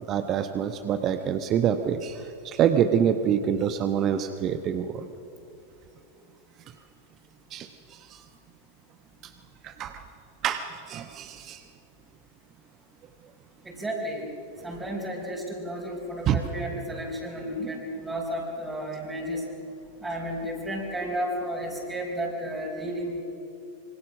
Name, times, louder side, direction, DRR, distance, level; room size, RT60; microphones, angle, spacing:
voice 1, 0.1-5.1 7.5-8.2 9.2-9.3 9.6-10.0 10.4-11.6 16.3-16.4, right 8 dB, 30° right, 9 dB, 1.1 m, -26 dB
voice 2, 13.6-14.3 14.6-19.4 20.0-23.2, equal, 10° right, -4 dB, 4.7 m, -32 dB
27.0 x 25.0 x 6.4 m, 2.9 s
figure-of-eight pair, 90°, 0 cm